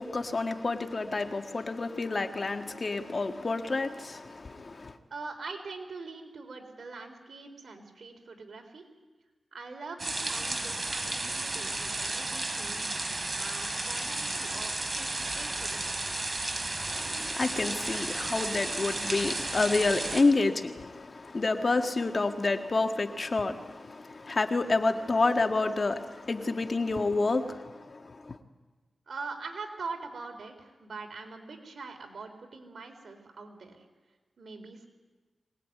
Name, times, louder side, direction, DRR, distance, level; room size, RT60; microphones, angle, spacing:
voice 1, 0.0-5.0 16.9-28.4, left 3 dB, 45° left, 1.7 m, -29 dB
voice 2, 5.1-8.8 9.5-12.8 13.3-16.1 29.1-33.9 34.4-34.9, right 4 dB, 70° right, 4.1 m, -43 dB
sound 1, 10.0-20.2, right 2 dB, 35° right, 3.6 m, -33 dB
23.5 x 19.0 x 9.5 m
cardioid pair, 70°, 0 cm